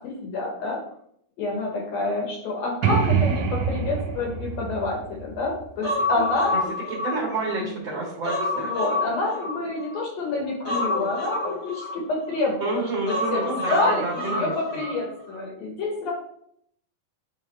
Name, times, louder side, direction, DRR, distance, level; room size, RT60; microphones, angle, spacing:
voice 1, 0.2-0.8 1.4-6.6 7.6-7.7 8.6-13.5 13.7-16.1, left 3 dB, 65° left, 0 dB, 1.8 m, -28 dB
sound 1, 2.8-6.5, right 7 dB, 85° right, 1.4 m, -26 dB
Human voice, 5.8-7.6 8.0-10.0 10.6-12.4 13.1-15.0 15.3-15.4, left 2 dB, 40° left, 1.1 m, -28 dB
voice 2, 6.9-8.7 12.6-14.8, right 3 dB, 50° right, -7 dB, 1.5 m, -29 dB
9.3 x 3.6 x 3.2 m, 0.70 s
omnidirectional pair, 4.2 m